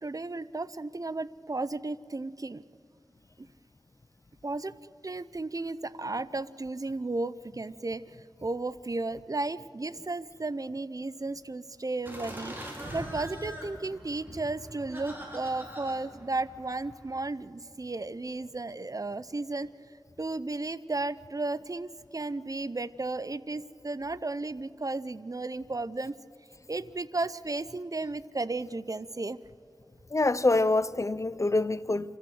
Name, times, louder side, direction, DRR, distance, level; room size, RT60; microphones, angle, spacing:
voice 1, 0.0-2.6 4.4-4.7 5.0-8.2 8.4-12.5 12.9-19.7 20.2-26.1 26.7-29.4, right 2 dB, 45° right, 0.6 m, -34 dB
sound 1, 12.0-17.2, equal, 25° right, 5.2 m, -43 dB
voice 2, 30.1-32.2, left 2 dB, 40° left, 0.5 m, -25 dB
26.5 x 14.0 x 7.9 m
wide cardioid pair, 45°, 8 cm